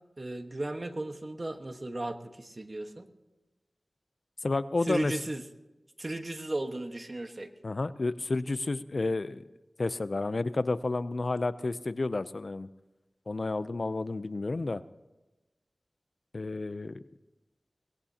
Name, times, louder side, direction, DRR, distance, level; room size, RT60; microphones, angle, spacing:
voice 1, 0.2-3.1 4.9-5.4 6.0-7.5, right 1 dB, 45° right, 6 dB, 1.4 m, -35 dB
voice 2, 4.4-5.1 7.6-9.4 9.8-12.7 13.3-14.8 16.3-17.0, left 3 dB, 60° left, 14 dB, 0.6 m, -31 dB
23.0 x 19.5 x 2.9 m, 1.1 s
wide cardioid pair, 55°, 0 cm